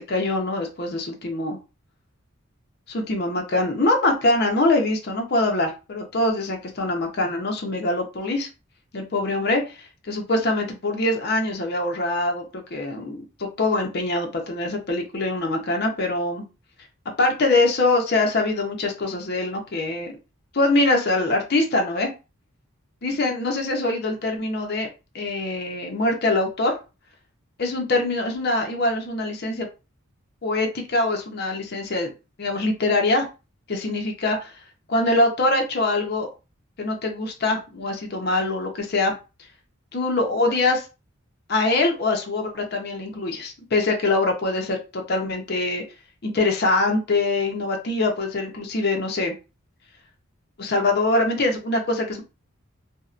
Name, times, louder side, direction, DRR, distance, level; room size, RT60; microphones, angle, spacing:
voice 1, 0.0-1.6 2.9-8.5 8.9-16.4 17.2-20.1 20.5-22.1 23.0-24.9 25.1-26.8 27.6-29.7 30.4-32.1 32.4-33.2 33.7-34.6 34.9-36.3 36.8-39.2 39.9-40.9 41.5-45.8 46.2-49.4 50.6-52.2, left 2 dB, 50° left, 2 dB, 0.6 m, -23 dB
2.5 x 2.0 x 2.4 m, 0.30 s
head